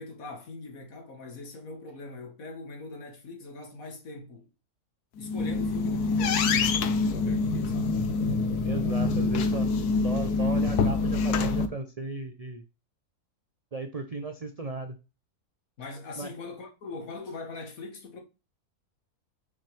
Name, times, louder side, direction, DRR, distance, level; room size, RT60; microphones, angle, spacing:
voice 1, 0.0-4.5 5.2-8.0 15.8-18.2, left 3 dB, 65° left, 1.9 m, -42 dB
sound 1, 5.2-11.7, left 4 dB, 85° left, 1.3 m, -26 dB
voice 2, 8.6-12.6 13.7-15.0 16.2-16.3, right 3 dB, 50° right, 0.4 m, -36 dB
6.5 x 5.8 x 3.3 m
omnidirectional pair, 1.6 m